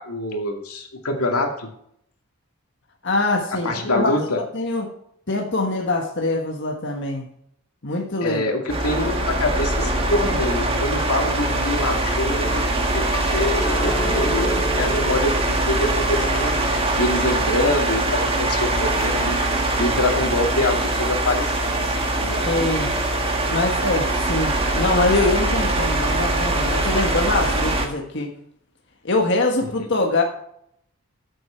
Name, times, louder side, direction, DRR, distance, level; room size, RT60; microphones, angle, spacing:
voice 1, 0.0-1.7 3.6-4.4 8.2-19.4 19.8-22.4 29.6-29.9, left 1 dB, 90° left, 2 dB, 2.4 m, -25 dB
voice 2, 3.0-4.9 5.3-7.3 7.8-8.4 22.4-22.9 23.5-28.3 29.0-30.2, left 2 dB, 55° left, 1 dB, 1.5 m, -23 dB
sound 1, 8.7-27.9, right 2 dB, 25° right, 1.8 m, -22 dB
sound 2, 13.1-19.6 20.0-20.7, equal, 15° left, 0.8 m, -33 dB
14.0 x 8.0 x 4.5 m, 0.70 s
head